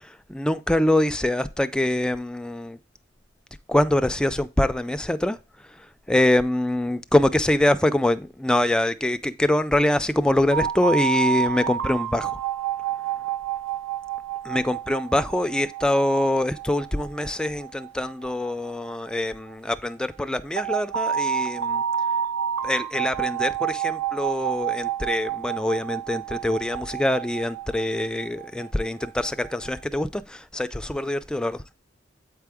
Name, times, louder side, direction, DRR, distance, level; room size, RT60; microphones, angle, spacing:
voice 1, 0.0-2.8 3.7-12.4 14.4-21.8 22.6-31.6, left 1 dB, 5° left, 0.3 m, -24 dB
sound 1, 10.5-19.3 20.6-29.7, right 9 dB, 80° right, 0.6 m, -29 dB
8.2 x 4.7 x 3.5 m
head